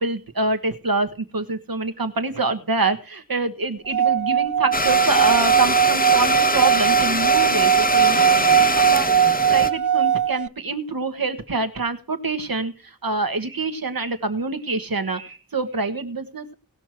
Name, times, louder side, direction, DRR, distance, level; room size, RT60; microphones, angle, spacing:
voice 1, 0.0-16.5, right 3 dB, 90° right, 9 dB, 1.4 m, -26 dB
Singing / Glass, 3.9-10.5, right 9 dB, 60° right, 0.5 m, -19 dB
Domestic sounds home sounds, 4.7-9.7, left 2 dB, 25° left, 1.0 m, -23 dB
19.0 x 6.3 x 4.5 m, 0.35 s
wide cardioid pair, 45°, 34 cm